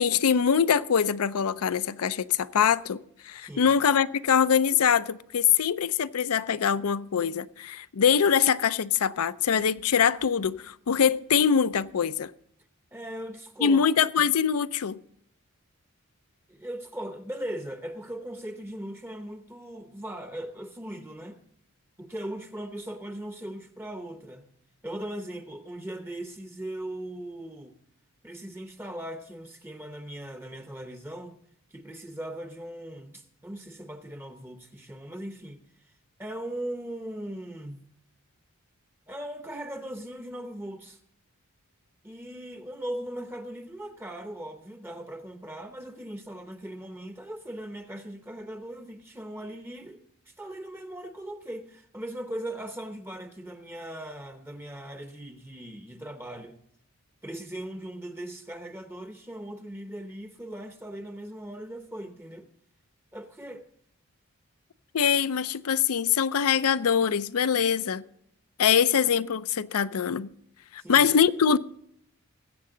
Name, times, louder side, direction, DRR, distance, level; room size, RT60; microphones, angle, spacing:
voice 1, 0.0-3.0 3.2-12.3 13.6-15.0 64.9-68.0 68.6-70.3 70.9-71.6, left 7 dB, 80° left, 0.5 m, -23 dB
voice 2, 3.4-3.7 12.9-13.9 16.5-21.4 22.0-24.5 24.8-27.8 28.2-31.4 31.7-35.6 36.2-37.8 39.1-41.0 42.0-56.6 57.2-62.5 63.1-63.7 70.8-71.1, right 1 dB, 10° right, 0.7 m, -39 dB
20.0 x 8.4 x 3.8 m
head